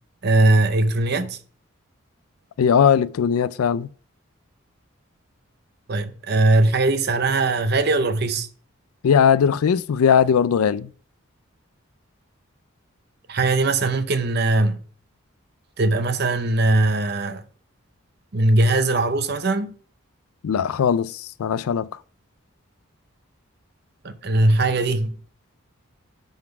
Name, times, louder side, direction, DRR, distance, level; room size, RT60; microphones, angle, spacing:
voice 1, 0.2-1.4 5.9-8.5 13.3-14.8 15.8-17.4 18.3-19.7 24.0-25.2, right 2 dB, 50° right, 0.6 m, -20 dB
voice 2, 2.6-3.9 9.0-10.9 20.4-21.9, left 7 dB, 85° left, 0.4 m, -19 dB
10.5 x 4.0 x 5.9 m
head